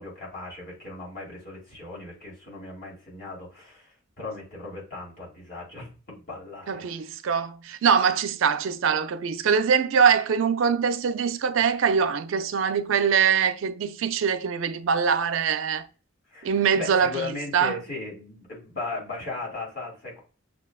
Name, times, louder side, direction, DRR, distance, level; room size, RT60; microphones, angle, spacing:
voice 1, 0.0-6.9 16.3-20.2, left 3 dB, 50° left, 2.0 m, -37 dB
voice 2, 6.7-15.9 16.4-17.8, right 6 dB, 80° right, 0.4 m, -23 dB
6.3 x 2.2 x 2.2 m
head